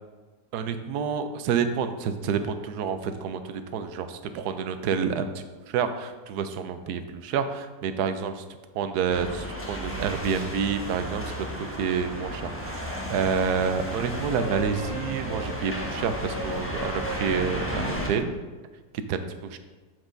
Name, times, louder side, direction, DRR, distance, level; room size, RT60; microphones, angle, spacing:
voice 1, 0.5-8.4 8.7-18.4 19.1-19.6, right 6 dB, 85° right, 9 dB, 1.1 m, -29 dB
sound 1, 9.1-18.1, equal, 10° left, 0.6 m, -33 dB
7.4 x 4.8 x 3.8 m, 1.3 s
omnidirectional pair, 1.7 m